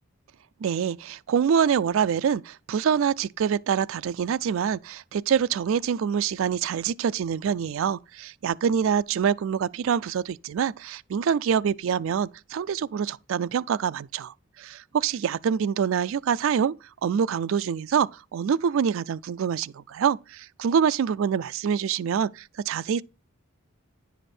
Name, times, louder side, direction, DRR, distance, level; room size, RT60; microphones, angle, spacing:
voice 1, 0.6-16.7 17.0-23.0, right 7 dB, 65° right, 0.3 m, -25 dB
9.8 x 5.0 x 4.3 m
head